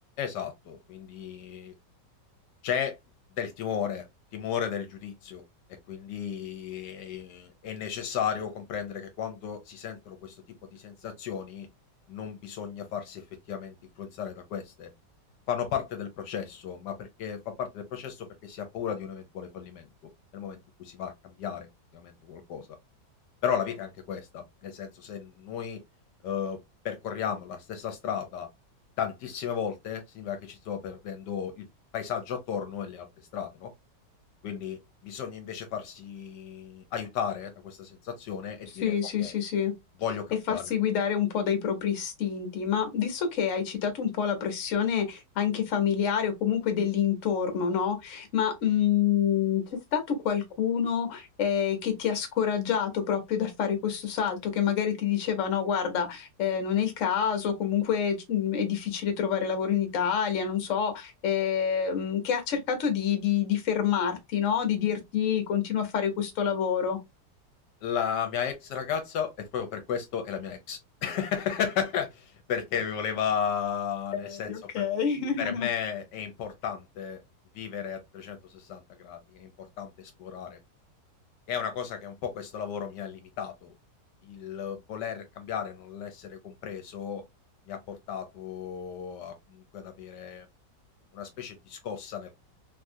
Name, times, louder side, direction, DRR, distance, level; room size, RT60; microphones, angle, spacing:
voice 1, 0.2-1.7 2.6-3.0 3.4-4.1 4.3-5.4 5.9-10.4 10.7-11.7 12.1-14.9 15.5-19.9 20.3-22.7 23.4-25.8 26.2-26.6 26.8-28.5 29.0-31.7 31.9-33.1 33.3-33.7 34.4-39.4 40.0-40.7 67.8-74.8 75.4-77.2 77.5-80.6 81.5-83.7 84.2-87.2 87.7-90.5 91.1-92.3, left 8 dB, 80° left, 1.2 m, -34 dB
voice 2, 38.8-39.7 40.5-49.6 49.9-67.0 74.1-75.7, left 8 dB, 55° left, 1.1 m, -27 dB
3.2 x 2.4 x 2.6 m
omnidirectional pair, 1.9 m